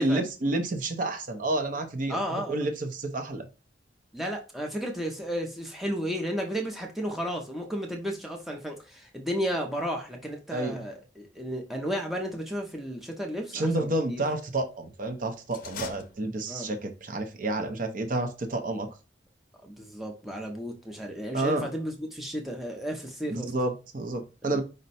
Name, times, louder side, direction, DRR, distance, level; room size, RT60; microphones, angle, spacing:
voice 1, 0.0-2.2 2.5-3.5 10.5-10.8 13.5-18.9 21.3-21.7 23.3-24.6, right 2 dB, 45° right, 0.6 m, -29 dB
voice 2, 2.1-2.7 4.1-14.2 16.5-16.7 19.6-23.5 24.4-24.6, equal, ahead, 0.6 m, -33 dB
sound 1, 15.5-16.8, left 5 dB, 50° left, 0.6 m, -41 dB
5.1 x 2.2 x 4.1 m
head